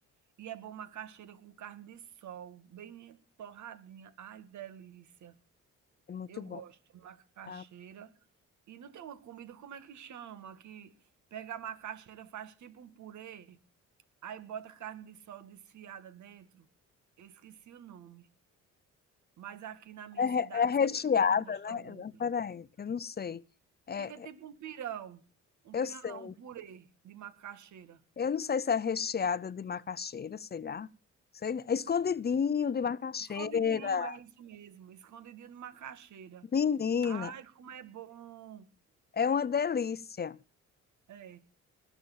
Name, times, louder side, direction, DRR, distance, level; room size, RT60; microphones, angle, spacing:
voice 1, 0.4-5.3 6.3-8.2 8.7-10.9 11.3-13.6 14.2-16.7 17.2-18.3 19.4-22.2 24.0-25.2 25.6-28.0 33.3-36.5 37.0-38.7 41.1-41.4, right 9 dB, 70° right, 2.1 m, -46 dB
voice 2, 6.1-6.6 7.5-7.6 20.2-23.4 23.9-24.1 25.7-26.3 28.2-30.9 31.4-34.1 36.5-37.3 39.1-40.4, left 6 dB, 35° left, 0.7 m, -30 dB
20.0 x 7.1 x 7.2 m
cardioid pair, 90°, 30 cm